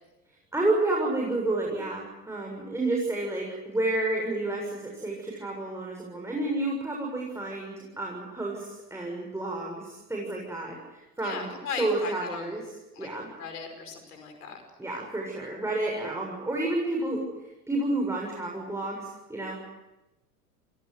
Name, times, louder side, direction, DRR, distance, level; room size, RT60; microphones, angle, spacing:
voice 1, 0.5-11.5 11.8-12.6 13.0-13.3 14.8-17.2 17.7-19.6, right 2 dB, 5° right, -1 dB, 6.9 m, -30 dB
voice 2, 11.2-12.6 12.9-13.1 13.4-14.6, left 6 dB, 75° left, 6 dB, 5.4 m, -37 dB
29.0 x 17.5 x 8.1 m, 1.0 s
hypercardioid pair, 85°, 46 cm